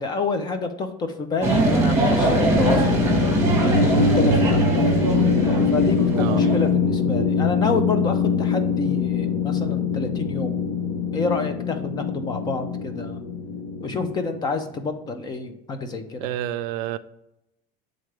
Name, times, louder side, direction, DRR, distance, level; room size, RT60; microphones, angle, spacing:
voice 1, 0.0-3.1 3.8-4.6 5.4-10.6 11.1-13.2 13.8-16.3, left 4 dB, 20° left, 0.5 m, -28 dB
sound 1, 1.4-6.7, right 1 dB, 10° right, 1.4 m, -22 dB
sound 2, 2.5-14.7, left 4 dB, 90° left, 1.1 m, -23 dB
voice 2, 16.2-17.0, right 12 dB, 75° right, 0.4 m, -28 dB
7.6 x 3.8 x 3.3 m
cardioid pair, 170°, 20 cm